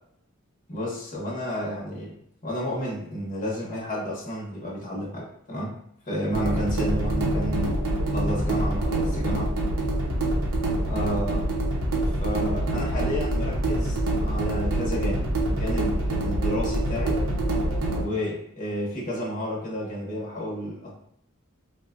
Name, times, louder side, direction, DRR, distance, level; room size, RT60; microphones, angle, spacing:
voice 1, 0.7-2.1 2.4-5.7 6.1-7.8 8.1-9.5 10.9-11.5 12.2-17.2 17.9-20.9, equal, 40° left, -4 dB, 0.8 m, -31 dB
sound 1, 6.3-18.0, right 1 dB, 80° right, 0.8 m, -25 dB
4.0 x 2.2 x 2.4 m, 0.72 s
head